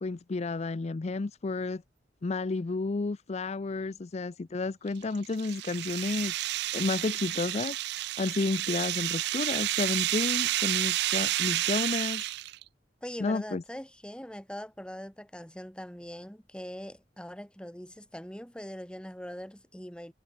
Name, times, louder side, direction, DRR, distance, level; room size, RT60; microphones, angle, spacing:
voice 1, 0.0-1.8 2.2-7.8 8.2-12.3 13.2-13.6, left 3 dB, 35° left, 0.5 m, -31 dB
sound 1, 4.9-12.6, right 16 dB, 65° right, 0.4 m, -30 dB
voice 2, 13.0-20.1, equal, 5° left, 3.6 m, -42 dB
head